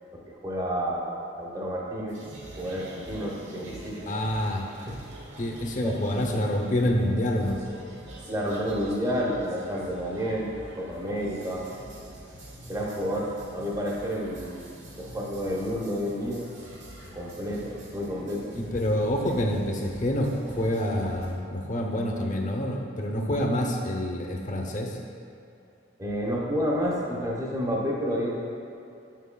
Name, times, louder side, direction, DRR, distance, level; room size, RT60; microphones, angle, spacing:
voice 1, 0.1-2.2 2.6-4.2 4.9-5.0 5.8-5.9 8.3-11.7 12.7-14.7 15.0-16.5 17.1-18.6 19.3-19.4 26.0-28.4, equal, 20° right, -3 dB, 0.7 m, -30 dB
sound 1, 2.1-21.3, right 1 dB, 70° right, 1.2 m, -45 dB
voice 2, 4.1-4.7 5.4-7.6 18.5-25.0, left 1 dB, 40° left, 0 dB, 0.6 m, -27 dB
7.4 x 6.1 x 2.2 m, 2.6 s
head